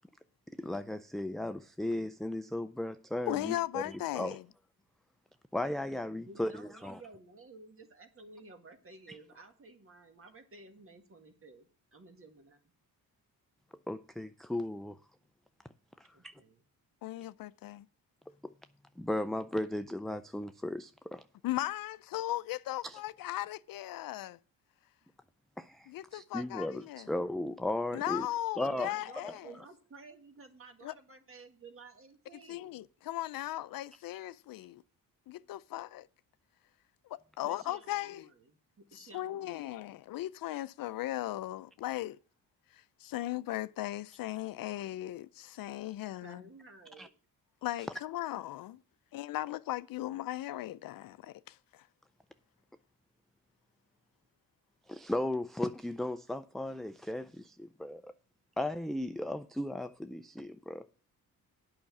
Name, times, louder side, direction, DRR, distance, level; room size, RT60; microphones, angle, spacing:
voice 1, 0.6-4.4 5.5-7.0 13.9-15.0 16.0-16.1 18.4-18.5 19.0-21.2 22.8-23.0 25.6-28.3 28.6-28.9 29.2-29.4 47.0-47.1 54.9-58.1 58.6-60.9, left 1 dB, ahead, 0.4 m, -36 dB
voice 2, 3.3-4.4 17.0-17.9 21.4-24.4 25.9-27.1 27.9-29.5 30.8-30.9 32.5-34.8 35.3-36.1 37.0-38.3 38.9-42.2 42.7-46.4 47.6-48.8 49.1-51.9, left 15 dB, 65° left, 0.5 m, -37 dB
voice 3, 6.2-12.6 16.1-16.6 28.6-32.8 37.4-39.8 46.2-47.1, right 3 dB, 35° right, 1.9 m, -54 dB
8.8 x 5.8 x 7.2 m
cardioid pair, 90°, 37 cm